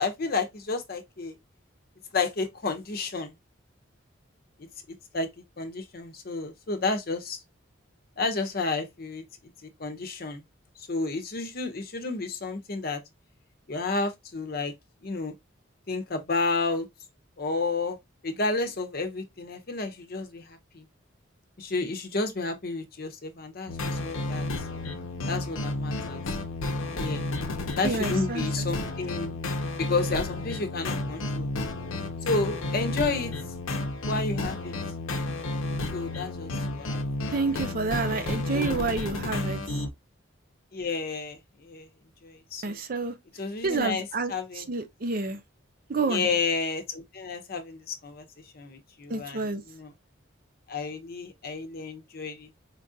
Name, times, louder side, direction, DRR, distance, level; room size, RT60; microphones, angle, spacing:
voice 1, 0.0-1.4 2.1-3.3 5.1-7.4 8.2-9.2 9.6-10.4 10.9-13.0 13.7-14.7 15.0-15.3 15.9-16.9 17.4-18.0 18.2-20.9 21.6-24.5 25.3-26.2 26.9-27.2 27.7-29.3 29.8-31.5 32.2-33.3 34.1-34.7 35.9-37.3 38.5-38.8 40.7-41.9 42.2-42.8 43.3-44.7 46.1-48.3 48.5-49.9 50.7-52.5, left 3 dB, 50° left, 0.7 m, -31 dB
sound 1, 23.7-39.9, left 2 dB, 85° left, 0.7 m, -31 dB
voice 2, 27.8-28.5 37.3-39.6 42.6-43.1 43.6-45.4 45.9-46.3 49.1-49.6, right 3 dB, 45° right, 0.5 m, -29 dB
4.4 x 2.5 x 2.6 m
head